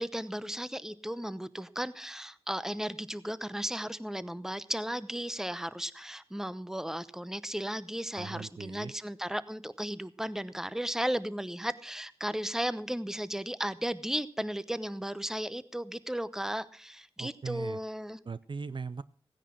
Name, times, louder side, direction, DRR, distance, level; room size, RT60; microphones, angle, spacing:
voice 1, 0.0-18.2, equal, 5° right, 16 dB, 0.9 m, -35 dB
voice 2, 8.1-8.9 17.2-17.8 18.3-19.0, right 5 dB, 55° right, 16 dB, 0.5 m, -39 dB
16.0 x 9.9 x 6.0 m, 0.43 s
cardioid pair, 55°, 10 cm